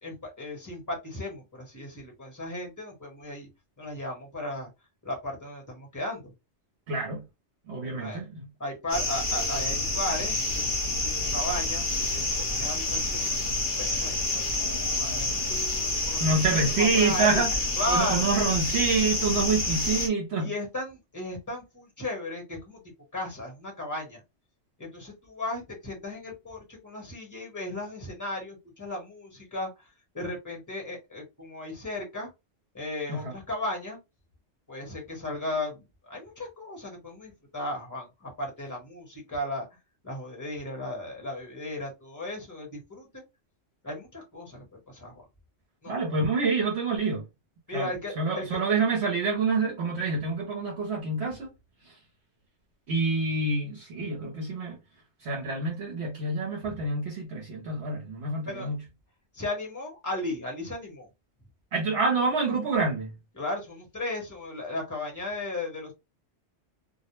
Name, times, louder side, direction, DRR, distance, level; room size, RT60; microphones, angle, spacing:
voice 1, 0.0-3.5 3.8-4.7 5.0-6.3 7.8-8.2 8.6-11.0 11.3-13.4 13.8-17.4 17.8-18.3 20.4-22.8 23.1-24.2 24.8-29.7 30.1-32.3 32.7-34.0 34.7-39.6 40.0-43.2 43.8-45.2 45.8-46.2 47.7-48.6 56.6-56.8 58.4-58.7 59.3-61.1 63.3-65.9, left 1 dB, 15° left, 1.0 m, -35 dB
voice 2, 6.9-7.2 7.7-8.5 16.2-17.5 17.9-20.5 33.1-33.3 45.9-47.2 47.7-47.9 48.2-51.5 51.9-52.0 52.9-54.8 55.2-58.8 61.7-63.1, right 3 dB, 70° right, 0.9 m, -27 dB
sound 1, 8.9-20.1, left 2 dB, 50° left, 0.9 m, -28 dB
2.3 x 2.0 x 3.0 m
omnidirectional pair, 1.2 m